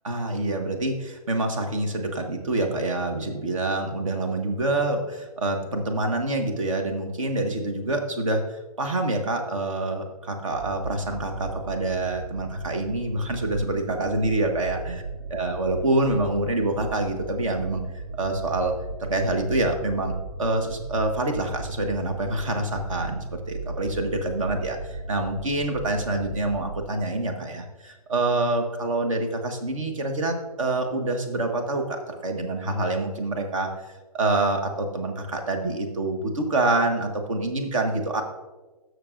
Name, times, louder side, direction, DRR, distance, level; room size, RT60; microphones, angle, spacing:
voice 1, 0.0-15.0 15.3-17.8 18.2-18.7 19.0-33.7 34.1-38.2, right 2 dB, 55° right, 4 dB, 1.5 m, -26 dB
sound 1, 10.5-26.9, right 2 dB, 80° right, 1.6 m, -36 dB
18.0 x 6.5 x 2.6 m, 1.2 s
figure-of-eight pair, 125°, 20 cm